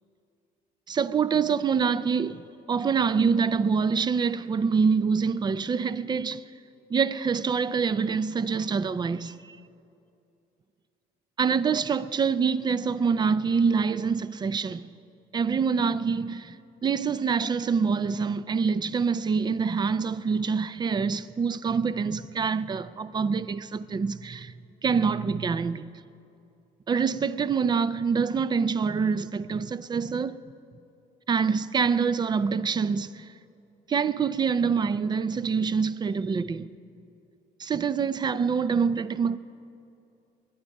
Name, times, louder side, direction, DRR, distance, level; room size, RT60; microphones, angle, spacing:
voice 1, 0.9-6.4 6.9-9.6 11.4-14.8 15.3-16.6 16.8-24.5 24.8-25.9 26.9-30.4 31.3-33.2 33.9-36.7 37.6-39.4, right 5 dB, 25° right, 0.4 m, -25 dB
21.5 x 10.0 x 5.3 m
cardioid pair, 110°, 17 cm